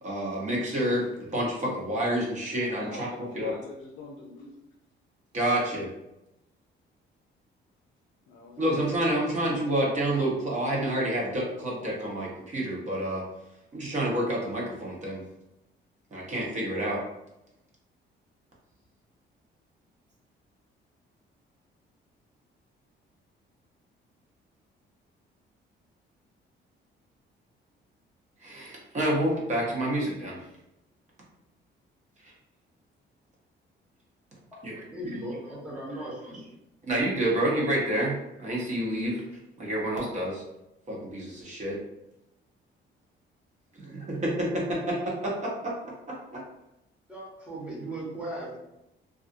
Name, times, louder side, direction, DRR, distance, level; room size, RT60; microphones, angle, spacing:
voice 1, 0.0-3.1 3.3-3.5 5.3-5.9 8.6-13.2 13.7-15.2 16.1-17.0 28.4-30.4 32.2-32.3 34.6-34.8 36.0-36.1 36.8-39.2 39.6-40.4 40.9-41.8 43.8-45.7 46.1-46.4, right 1 dB, 35° right, -3 dB, 0.8 m, -28 dB
voice 2, 2.6-4.5 8.3-8.7, left 3 dB, 65° left, -2 dB, 0.4 m, -43 dB
voice 3, 34.7-36.4 47.1-48.6, right 1 dB, 5° right, -6 dB, 0.9 m, -37 dB
2.4 x 2.3 x 2.5 m, 0.90 s
cardioid pair, 135°, 20 cm